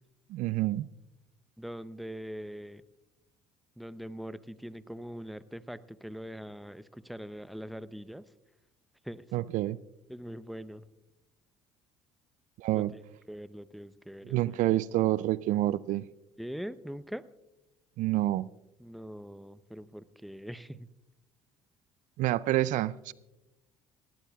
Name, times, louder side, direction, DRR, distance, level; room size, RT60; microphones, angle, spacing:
voice 1, 0.3-0.9 9.3-9.8 12.6-12.9 14.3-16.0 18.0-18.5 22.2-23.1, right 15 dB, 65° right, 0.4 m, -28 dB
voice 2, 1.6-2.8 3.8-8.3 9.0-9.2 10.1-10.9 12.7-13.0 13.3-14.6 16.4-17.2 18.8-20.9, equal, ahead, 0.6 m, -42 dB
19.0 x 17.0 x 2.3 m
hypercardioid pair, 70°, 14 cm